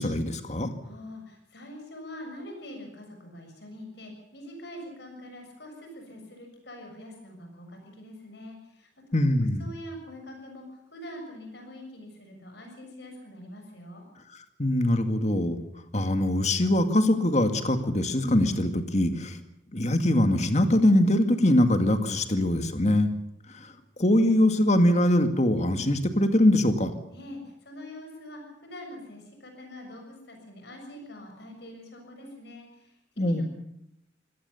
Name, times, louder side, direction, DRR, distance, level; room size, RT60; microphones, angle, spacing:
voice 1, 0.0-0.7 9.1-9.6 14.6-15.6 15.9-19.4 19.7-23.1 23.5-23.7 24.0-26.9 33.2-33.4, left 1 dB, 35° left, 8 dB, 2.1 m, -22 dB
voice 2, 0.8-8.9 9.6-14.1 27.1-33.4, left 1 dB, 60° left, 3 dB, 6.8 m, -44 dB
25.0 x 17.5 x 7.1 m, 0.76 s
head